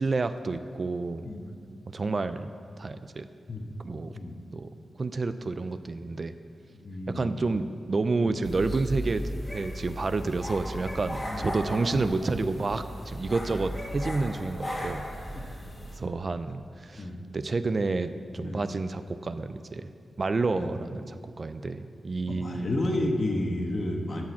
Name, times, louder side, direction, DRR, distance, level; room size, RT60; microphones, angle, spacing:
voice 1, 0.0-1.3 1.9-2.5 2.8-3.3 3.8-4.1 4.5-4.7 5.0-6.3 7.1-15.6 15.9-17.1 17.3-19.9 20.2-23.2, right 3 dB, 40° right, 11 dB, 0.4 m, -30 dB
voice 2, 6.8-7.4 8.2-8.4 11.2-11.5 11.9-12.1 15.3-15.5 16.9-17.2 18.4-18.7 20.5-20.7 22.3-24.2, left 1 dB, 45° left, 2 dB, 1.3 m, -31 dB
sound 1, 8.4-16.0, equal, 20° left, 1.7 m, -36 dB
13.0 x 6.1 x 7.2 m, 2.3 s
wide cardioid pair, 120°, 0 cm